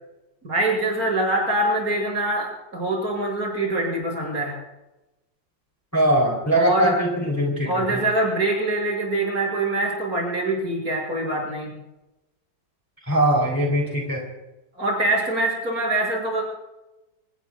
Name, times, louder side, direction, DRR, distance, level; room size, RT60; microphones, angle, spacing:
voice 1, 0.4-4.6 6.5-7.0 7.7-11.7 14.8-16.4, right 2 dB, 50° right, -1 dB, 7.2 m, -24 dB
voice 2, 5.9-8.0 13.1-14.2, right 1 dB, 10° left, 0 dB, 3.3 m, -21 dB
28.5 x 18.5 x 2.4 m, 0.99 s
omnidirectional pair, 2.0 m